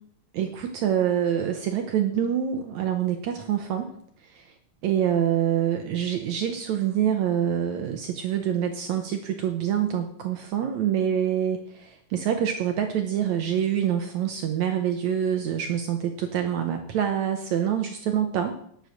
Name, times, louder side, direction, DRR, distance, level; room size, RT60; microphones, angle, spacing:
voice 1, 0.3-3.9 4.3-4.5 4.8-18.6, right 9 dB, 70° right, 5 dB, 1.9 m, -26 dB
10.0 x 8.0 x 6.4 m, 0.67 s
omnidirectional pair, 3.8 m